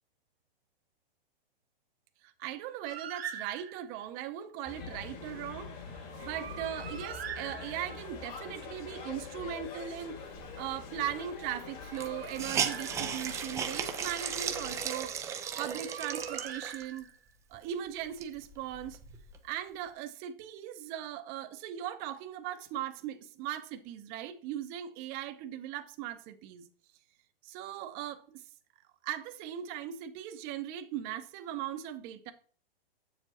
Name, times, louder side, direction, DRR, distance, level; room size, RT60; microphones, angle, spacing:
voice 1, 2.2-15.2 15.6-17.1 17.5-19.0 19.4-26.7 27.4-28.4 29.0-32.3, right 11 dB, 30° right, 0.8 m, -39 dB
Bird, 2.9-4.0 6.1-8.2 11.6-13.5 15.4-17.3, right 8 dB, 90° right, 1.1 m, -44 dB
sound 1, 4.7-14.9, left 5 dB, 35° left, 1.9 m, -44 dB
Hiss, 11.1-11.2 11.4-11.5 11.9-17.0 17.5-17.6 18.0-19.4, right 8 dB, 10° right, 0.4 m, -36 dB
7.4 x 7.0 x 2.9 m
hypercardioid pair, 140°, 30 cm